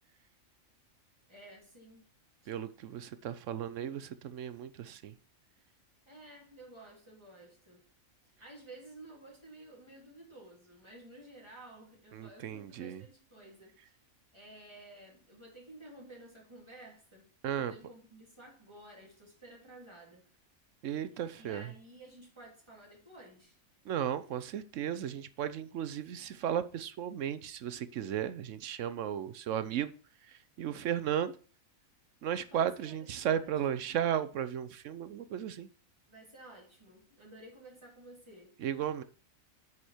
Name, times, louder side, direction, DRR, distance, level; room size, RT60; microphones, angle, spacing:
voice 1, 1.3-2.1 2.4-2.6 6.1-7.8 8.4-14.0 14.3-20.2 21.0-23.6 32.5-33.8 36.1-38.5, right 1 dB, 20° right, 3.2 m, -53 dB
voice 2, 2.5-5.1 12.1-13.0 17.4-17.7 20.8-21.6 23.9-29.9 30.6-31.3 32.2-35.7 38.6-39.0, right 9 dB, 70° right, 1.0 m, -35 dB
9.4 x 5.0 x 4.3 m
omnidirectional pair, 1.4 m